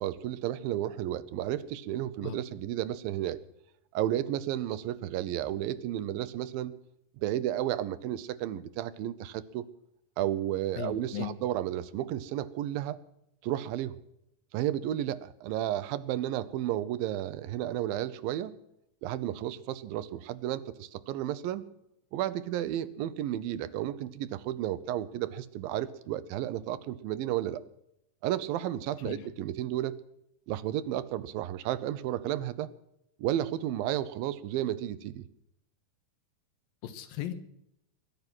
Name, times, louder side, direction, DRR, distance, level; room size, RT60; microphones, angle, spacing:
voice 1, 0.0-3.4 3.9-6.7 7.2-9.7 10.2-13.0 13.4-14.0 14.5-18.5 19.0-21.7 22.1-27.6 28.2-30.0 30.5-32.7 33.2-35.3, right 12 dB, 85° right, 14 dB, 2.5 m, -32 dB
voice 2, 10.8-11.3 29.1-29.2 36.8-37.3, left 11 dB, 85° left, 9 dB, 3.0 m, -36 dB
21.5 x 10.5 x 6.1 m, 0.78 s
omnidirectional pair, 4.0 m